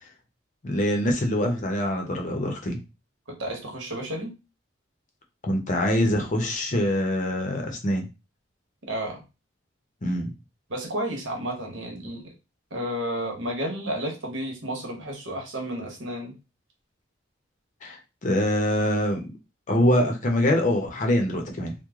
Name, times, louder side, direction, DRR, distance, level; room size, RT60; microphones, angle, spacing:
voice 1, 0.6-2.8 5.4-8.1 10.0-10.3 17.8-19.3 19.7-21.7, left 1 dB, 40° left, 3 dB, 0.7 m, -24 dB
voice 2, 3.4-4.3 8.9-9.2 10.7-12.3 12.7-16.3, right 1 dB, 75° right, 1 dB, 1.1 m, -31 dB
3.1 x 2.1 x 3.5 m, 0.27 s
head